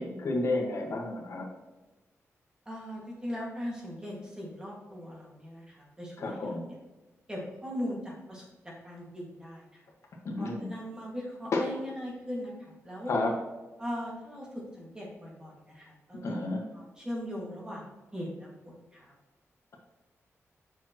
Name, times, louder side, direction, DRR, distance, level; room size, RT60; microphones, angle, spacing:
voice 1, 0.0-1.5 6.2-6.7 10.2-10.7 11.5-11.6 13.1-13.3 16.2-16.6, left 2 dB, 65° left, 0 dB, 1.5 m, -31 dB
voice 2, 2.7-6.6 7.3-9.8 10.4-13.1 13.8-17.8 18.1-19.1, equal, 15° right, -3 dB, 2.0 m, -40 dB
7.1 x 6.0 x 3.0 m, 1.1 s
wide cardioid pair, 130°, 5 cm